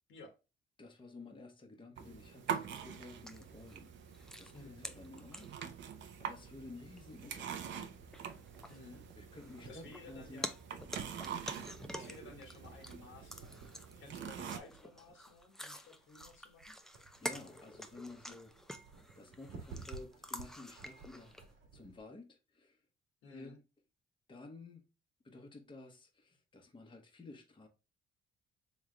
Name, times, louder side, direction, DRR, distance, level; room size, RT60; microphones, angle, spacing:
voice 1, 0.8-5.5 6.2-8.0 9.1-10.5 10.9-11.1 17.0-18.7 19.1-21.4 21.7-22.8 23.3-23.6 24.3-24.9 25.2-27.7, left 2 dB, 25° left, 1.0 m, -53 dB
sound 1, 2.0-14.6, right 8 dB, 70° right, 0.7 m, -45 dB
sound 2, 2.5-5.9 6.5-6.6 7.0-7.1 7.5-7.8 8.1-10.1 10.4-13.0 13.3-21.5, equal, ahead, 0.4 m, -48 dB
voice 2, 4.5-4.9 8.7-9.0 9.7-10.5 11.9-13.7 14.0-16.7 23.2-23.6, left 3 dB, 80° left, 1.3 m, -55 dB
sound 3, 5.7-22.0, right 4 dB, 85° right, 1.4 m, -56 dB
3.6 x 3.2 x 3.2 m
cardioid pair, 90°, 20 cm